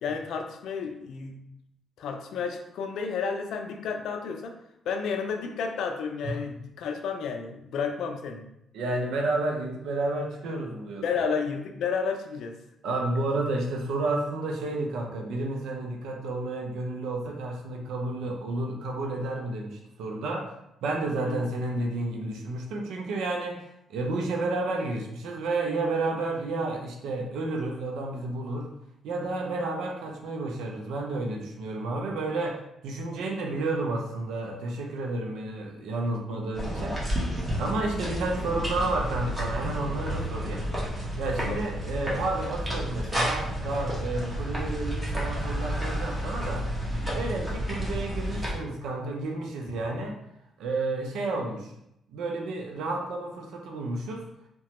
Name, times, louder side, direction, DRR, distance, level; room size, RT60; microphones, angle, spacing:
voice 1, 0.0-1.4 2.0-4.5 4.9-8.5 11.0-12.6 21.2-21.5 41.5-41.6, left 5 dB, 75° left, 5 dB, 0.4 m, -31 dB
voice 2, 8.7-11.1 12.8-20.5 20.8-23.6 23.9-28.7 29.0-32.6 32.8-37.0 37.5-40.9 41.2-46.7 47.1-50.2 50.6-51.7 52.1-54.2, right 2 dB, 80° right, 2 dB, 0.5 m, -31 dB
sound 1, 36.5-48.5, equal, 15° right, 1.0 m, -31 dB
2.9 x 2.2 x 2.8 m, 0.82 s
cardioid pair, 90°, 0 cm